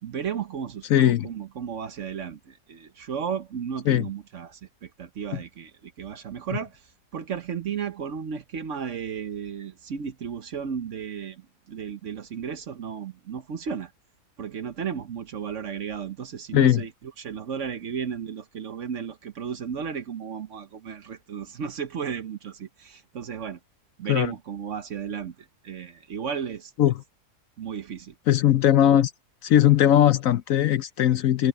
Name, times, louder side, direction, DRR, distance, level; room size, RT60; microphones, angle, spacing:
voice 1, 0.0-13.9 14.4-16.9 17.2-23.6 24.0-26.9 27.6-28.1, right 7 dB, 55° right, 1.1 m, -34 dB
voice 2, 0.9-1.3 3.9-4.1 16.5-16.8 24.1-24.3 26.8-26.9 28.3-29.1 29.4-31.5, left 11 dB, 65° left, 0.9 m, -19 dB
omnidirectional pair, 1.7 m